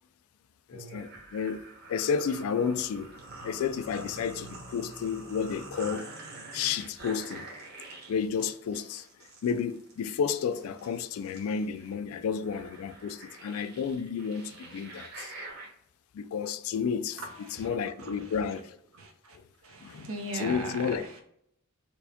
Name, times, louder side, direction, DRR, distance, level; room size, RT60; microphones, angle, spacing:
voice 1, 0.7-6.1 6.5-7.5 8.1-9.1 9.4-15.3 16.1-18.8 19.8-20.1 20.3-21.0, left 6 dB, 80° left, 0.3 m, -31 dB
sound 1, 0.7-15.7, right 2 dB, 50° right, 1.0 m, -46 dB
voice 2, 17.2-18.3 18.9-19.4 19.6-21.2, right 2 dB, 75° right, 0.8 m, -40 dB
4.5 x 2.1 x 2.8 m
head